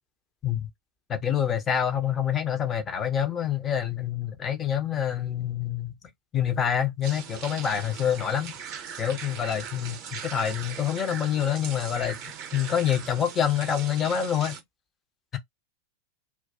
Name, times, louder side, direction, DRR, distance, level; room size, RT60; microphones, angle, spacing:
voice 1, 1.1-5.9 6.3-8.5 9.0-12.2 12.5-14.5, left 9 dB, 25° left, 0.6 m, -26 dB
sound 1, 7.0-14.6, right 8 dB, 40° right, 0.7 m, -40 dB
2.2 x 2.2 x 2.6 m
figure-of-eight pair, 90°, 0 cm